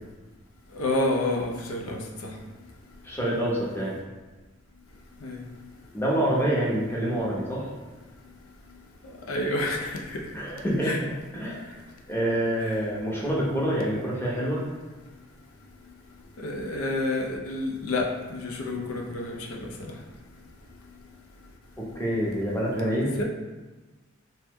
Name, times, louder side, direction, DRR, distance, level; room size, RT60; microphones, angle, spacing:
voice 1, 0.7-2.3 5.2-5.4 9.3-10.2 10.8-11.0 12.6-12.8 16.4-19.9 23.2-23.3, left 2 dB, 85° left, 0 dB, 0.5 m, -29 dB
voice 2, 3.0-3.9 5.9-7.7 10.3-11.0 11.3-11.7 12.1-14.6 21.8-23.1, right 1 dB, 10° left, -5 dB, 0.6 m, -26 dB
3.0 x 2.1 x 3.4 m, 1.2 s
head